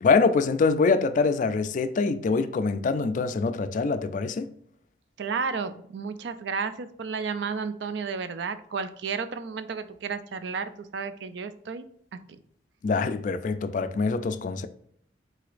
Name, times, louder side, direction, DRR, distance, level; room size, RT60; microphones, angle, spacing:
voice 1, 0.0-4.5 12.8-14.7, left 4 dB, 45° left, 0.3 m, -24 dB
voice 2, 5.2-11.9 12.3-12.4, right 5 dB, 75° right, 0.4 m, -32 dB
4.8 x 3.9 x 2.5 m
head